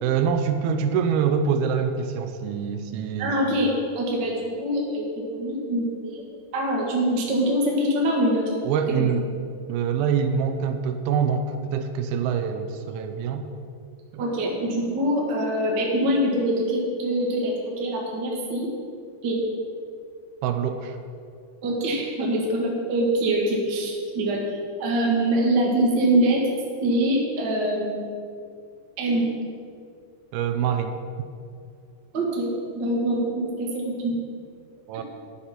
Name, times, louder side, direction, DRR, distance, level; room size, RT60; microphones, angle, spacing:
voice 1, 0.0-3.5 8.6-9.2 9.7-13.5 14.1-14.2 20.4-21.0 30.3-31.0 34.9-35.0, right 7 dB, 85° right, 7 dB, 2.6 m, -25 dB
voice 2, 3.2-6.2 6.5-8.4 8.9-9.1 14.2-18.7 19.2-19.4 21.6-26.4 26.8-28.1 29.0-29.3 32.1-34.2, right 1 dB, 40° right, -2 dB, 1.9 m, -24 dB
9.7 x 8.5 x 5.9 m, 2.3 s
omnidirectional pair, 4.3 m